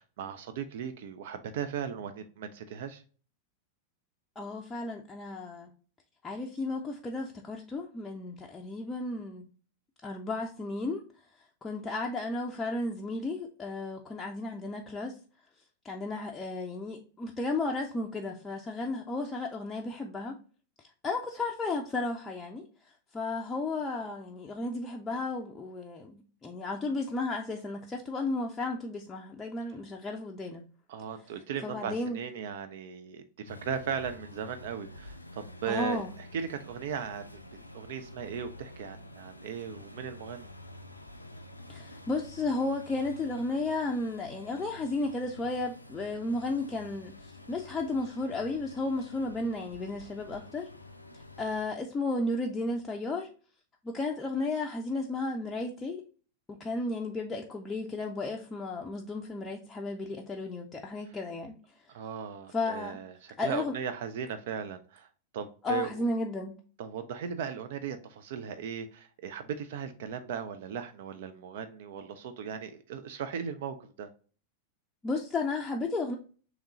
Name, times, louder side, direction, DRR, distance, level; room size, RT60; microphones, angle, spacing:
voice 1, 0.0-3.0 30.9-37.4 37.7-40.5 61.9-65.1 65.3-65.9 66.8-74.1, right 7 dB, 55° right, 0.3 m, -37 dB
voice 2, 4.4-5.7 6.2-9.5 10.0-11.0 11.6-15.2 15.8-20.4 21.0-22.6 23.1-30.6 31.6-32.2 35.7-36.1 41.7-50.7 51.1-53.3 53.8-56.0 56.5-61.5 62.5-63.0 63.4-63.7 65.6-66.5 75.0-76.2, left 2 dB, 15° left, 0.5 m, -33 dB
sound 1, 33.5-51.6, left 2 dB, 85° left, 0.3 m, -49 dB
3.6 x 3.1 x 3.8 m
figure-of-eight pair, 90°, 0 cm